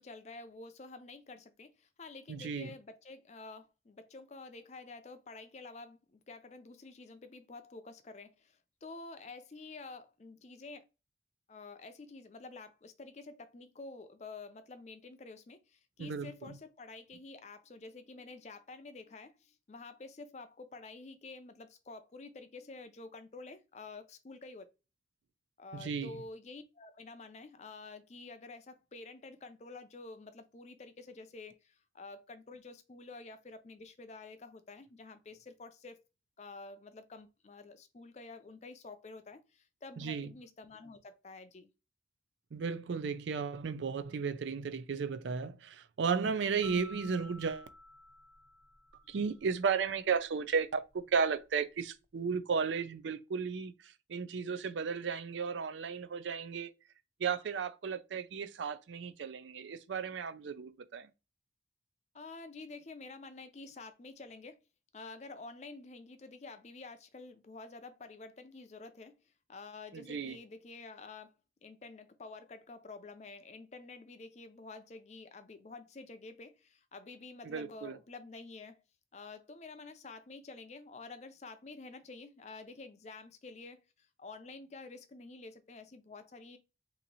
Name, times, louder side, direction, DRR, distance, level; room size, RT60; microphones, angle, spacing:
voice 1, 0.0-10.8 11.5-24.7 25.6-36.0 36.4-41.7 62.1-64.6 64.9-69.2 69.5-71.3 71.6-78.8 79.1-86.6, left 3 dB, 40° left, 0.5 m, -49 dB
voice 2, 2.3-2.7 16.0-16.6 25.7-26.2 40.0-40.3 42.5-47.7 49.1-50.8 51.1-56.7 57.2-61.1 69.9-70.4 77.4-78.0, right 5 dB, 80° right, 0.4 m, -34 dB
sound 1, 46.6-49.4, left 2 dB, 60° right, 1.2 m, -53 dB
2.9 x 2.6 x 4.0 m
head